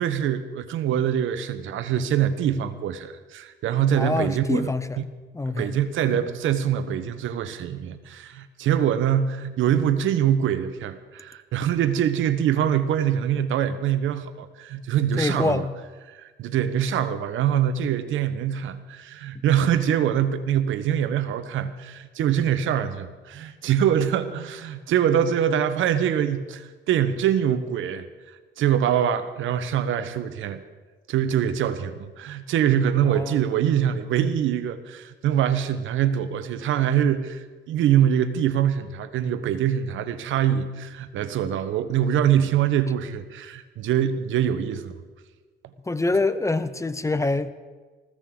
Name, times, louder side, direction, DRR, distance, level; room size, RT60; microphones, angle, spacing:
voice 1, 0.0-4.7 5.6-15.6 16.1-30.6 31.1-44.9, right 9 dB, 80° right, 12 dB, 1.0 m, -24 dB
voice 2, 3.9-5.1 5.3-5.8 6.0-6.2 15.2-15.7 33.1-33.4 45.8-47.5, left 2 dB, 15° left, 13 dB, 0.8 m, -25 dB
20.0 x 16.0 x 3.8 m, 1.4 s
cardioid pair, 90°, 20 cm